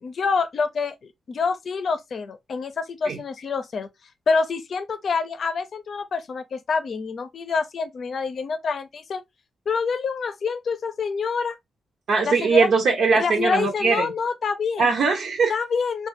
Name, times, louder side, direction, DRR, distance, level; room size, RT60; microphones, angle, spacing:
voice 1, 0.0-3.9 4.3-9.2 9.7-11.6 12.2-12.7 13.1-14.9 15.5-16.1, left 5 dB, 50° left, 0.6 m, -26 dB
voice 2, 12.1-14.1 14.8-15.5, right 4 dB, 65° right, 0.7 m, -20 dB
3.2 x 2.3 x 2.9 m
wide cardioid pair, 140°, 0 cm